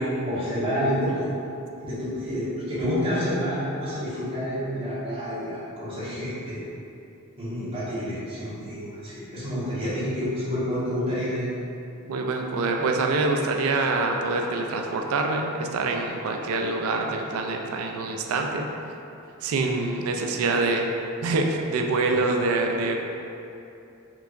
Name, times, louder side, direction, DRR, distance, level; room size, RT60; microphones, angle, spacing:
voice 1, 0.2-1.3 1.8-6.6 7.4-11.5, equal, 25° right, -12 dB, 1.4 m, -28 dB
voice 2, 12.1-18.7 19.4-20.9 21.2-23.0, right 3 dB, 80° right, 2 dB, 0.4 m, -25 dB
4.7 x 3.3 x 2.5 m, 2.7 s
head